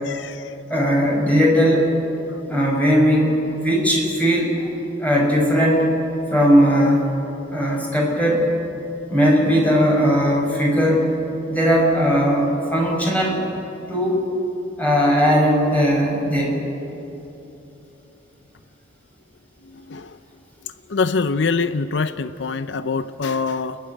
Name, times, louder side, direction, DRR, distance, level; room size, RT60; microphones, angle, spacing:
voice 1, 0.0-0.4 19.9-20.1 20.9-23.8, left 4 dB, 75° left, 12 dB, 0.6 m, -24 dB
voice 2, 0.7-1.9 2.5-4.5 5.0-5.9 6.3-7.0 7.5-8.5 9.1-11.1 11.5-13.4 13.9-14.2 14.8-16.5, equal, 10° left, -2 dB, 5.6 m, -18 dB
29.0 x 11.5 x 9.9 m, 3.0 s
head